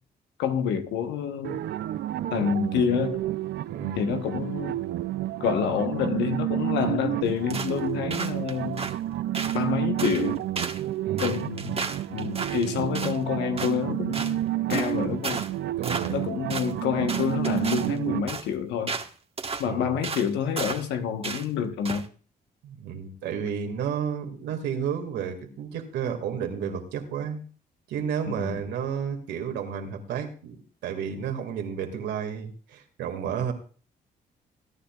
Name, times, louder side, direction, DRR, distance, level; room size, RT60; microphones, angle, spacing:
voice 1, 0.4-1.6 2.3-3.2 4.0-4.8 5.4-8.8 9.5-10.4 11.2-14.4 14.7-15.4 16.1-18.9 19.6-22.0 28.3-28.6, left 7 dB, 90° left, 1.3 m, -28 dB
sound 1, 1.4-18.2, right 14 dB, 70° right, 0.5 m, -30 dB
voice 2, 3.7-4.0 11.0-11.4 15.8-16.2 19.6-20.0 22.6-27.4 27.9-30.6 30.8-33.5, right 7 dB, 85° right, 2.2 m, -31 dB
sound 2, 7.5-7.8 8.1-8.9 9.3-9.6 10.0-10.3 10.6-10.8 11.2-13.2 13.6-13.8 14.1-14.3 14.7-14.9 15.2-15.5 15.8-16.2 16.5-16.7 17.1-17.9 18.3-18.5 18.9-19.1 19.4-19.7 20.0-20.3 20.6-20.9 21.2-21.4 21.8-22.0, right 4 dB, 35° right, 1.5 m, -33 dB
21.0 x 10.0 x 2.4 m
supercardioid pair, 65°, 18 cm